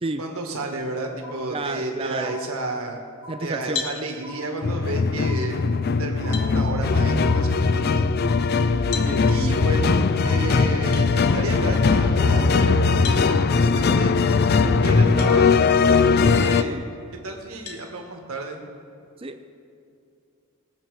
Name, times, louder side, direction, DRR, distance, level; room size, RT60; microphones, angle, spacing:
voice 1, 0.2-3.0 3.4-5.6 6.0-8.1 9.3-14.1 14.6-16.8 17.2-18.6, right 2 dB, 75° right, 2 dB, 1.7 m, -32 dB
sound 1, 0.7-0.9 1.2-1.9 2.2-2.9 3.2-3.9 4.2-4.9 5.2-5.9 6.2-6.9 7.2-7.9 8.2-8.9 9.2-9.9 10.2-10.9 11.2-11.9 12.2-12.9 13.2-13.9 14.2-14.9, left 2 dB, 75° left, 2.2 m, -44 dB
voice 2, 1.5-2.4 3.3-3.8 9.1-9.3 16.2-16.9 19.2-19.5, right 2 dB, 25° right, 8 dB, 0.5 m, -31 dB
sound 2, 3.7-4.0 5.7-5.8 6.3-6.5 8.9-9.1 10.9-11.1 13.0-13.3 15.2-15.3 16.0-16.1 17.7-17.9, left 6 dB, 90° left, 1.6 m, -31 dB
sound 3, 4.6-16.6, left 4 dB, 45° left, 0.4 m, -20 dB
21.0 x 7.4 x 4.8 m, 2.5 s
head